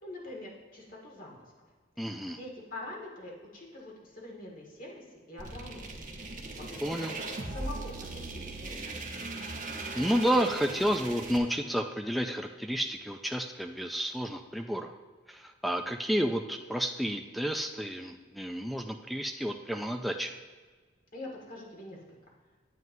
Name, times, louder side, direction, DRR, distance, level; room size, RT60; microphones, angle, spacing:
voice 1, 0.0-1.4 2.3-6.0 6.5-7.1 7.5-8.9 21.1-22.0, left 2 dB, 50° left, -3 dB, 2.1 m, -44 dB
voice 2, 2.0-2.4 6.8-7.1 9.7-14.9 15.3-20.3, equal, ahead, 3 dB, 0.3 m, -31 dB
sound 1, 5.4-11.4, right 3 dB, 50° right, 1.0 m, -39 dB
9.3 x 9.2 x 2.7 m, 1.4 s
head